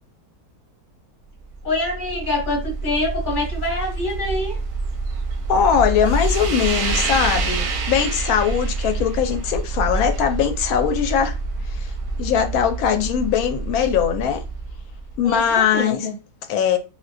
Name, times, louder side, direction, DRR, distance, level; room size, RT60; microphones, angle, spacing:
sound 1, 1.4-15.6, right 3 dB, 85° right, 1.1 m, -27 dB
voice 1, 1.6-4.6 15.2-16.1, left 2 dB, 40° left, 1.0 m, -25 dB
voice 2, 5.5-11.4 11.7-11.9 12.2-14.4 15.2-16.0 16.5-16.8, left 8 dB, 80° left, 1.0 m, -20 dB
3.6 x 2.1 x 2.5 m
omnidirectional pair, 1.6 m